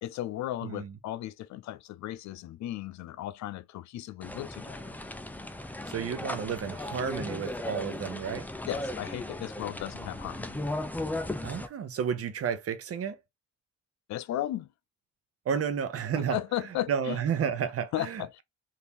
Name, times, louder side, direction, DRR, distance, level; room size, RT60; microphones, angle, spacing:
voice 1, 0.0-5.0 8.7-10.6 14.1-14.7 16.2-17.2 17.9-18.4, left 13 dB, 65° left, 0.4 m, -35 dB
sound 1, 4.2-11.7, left 1 dB, 5° left, 0.4 m, -36 dB
voice 2, 5.9-8.5 11.4-13.2 15.5-16.4 16.9-18.4, right 7 dB, 50° right, 0.7 m, -31 dB
3.4 x 2.7 x 2.8 m
cardioid pair, 90°, 30 cm